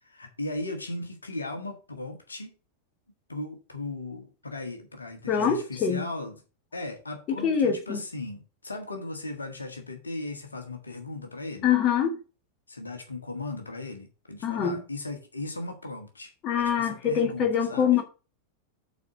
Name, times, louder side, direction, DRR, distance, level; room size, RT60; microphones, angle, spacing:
voice 1, 0.0-2.6 3.3-6.3 6.7-11.7 12.7-16.3 16.6-17.9, left 2 dB, 80° left, 1.6 m, -37 dB
voice 2, 5.3-6.1 7.4-8.0 11.6-12.2 14.4-14.8 16.4-18.0, left 7 dB, 35° left, 1.7 m, -24 dB
8.2 x 4.5 x 6.0 m
figure-of-eight pair, 90°, 0 cm